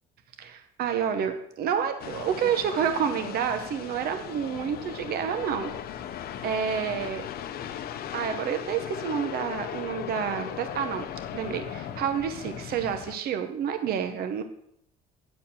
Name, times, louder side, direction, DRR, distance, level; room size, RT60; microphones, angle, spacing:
voice 1, 0.4-5.7 6.4-7.2 8.1-11.1 11.3-14.4, right 8 dB, 65° right, 7 dB, 1.0 m, -29 dB
sound 1, 2.0-13.2, left 10 dB, 65° left, 0.7 m, -37 dB
9.8 x 4.6 x 7.0 m, 0.73 s
cardioid pair, 110°, 17 cm